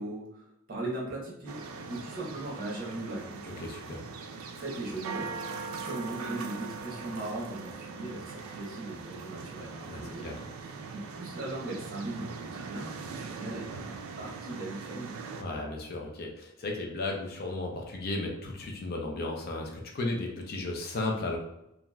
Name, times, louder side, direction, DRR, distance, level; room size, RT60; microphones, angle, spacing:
voice 1, 0.0-3.6 4.5-10.3 10.6-15.2, right 2 dB, 45° right, -4 dB, 0.9 m, -39 dB
sound 1, 1.5-15.4, right 4 dB, 75° right, 0.4 m, -41 dB
voice 2, 3.6-4.0 9.9-10.4 15.4-21.4, left 2 dB, 50° left, 1 dB, 0.5 m, -34 dB
3.0 x 2.4 x 2.2 m, 0.85 s
head